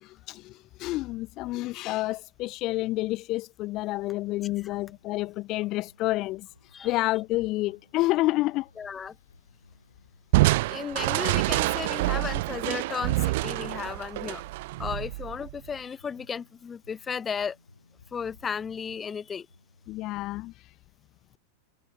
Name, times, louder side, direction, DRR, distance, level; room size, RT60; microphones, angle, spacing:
voice 1, 0.0-8.7 19.9-20.7, left 18 dB, 40° left, 0.3 m, -29 dB
sound 1, 4.0-20.0, left 2 dB, 85° left, 2.3 m, -59 dB
sound 2, 8.6-15.8, left 12 dB, 60° left, 4.1 m, -65 dB
voice 2, 8.8-9.2 10.7-14.4 14.8-17.6 18.1-19.5, left 6 dB, 20° left, 0.8 m, -34 dB
Crushing, 10.3-15.7, right 20 dB, 50° right, 0.3 m, -26 dB
figure-of-eight pair, 90°, 0 cm